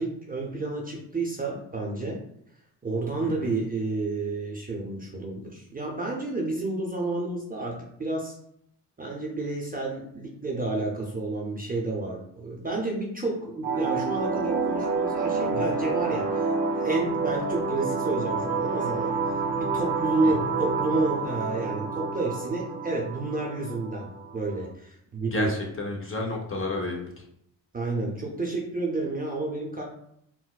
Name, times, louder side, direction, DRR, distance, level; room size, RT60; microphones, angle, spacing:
voice 1, 0.0-2.2 2.8-8.4 9.0-25.5 27.7-29.8, right 2 dB, 20° right, -2 dB, 0.5 m, -30 dB
voice 2, 3.2-3.5 20.2-20.3 25.3-27.2, left 2 dB, 30° left, 0 dB, 0.6 m, -31 dB
sound 1, 13.6-24.6, right 4 dB, 75° right, 0.7 m, -28 dB
4.0 x 2.1 x 2.3 m, 0.72 s
cardioid pair, 100°, 43 cm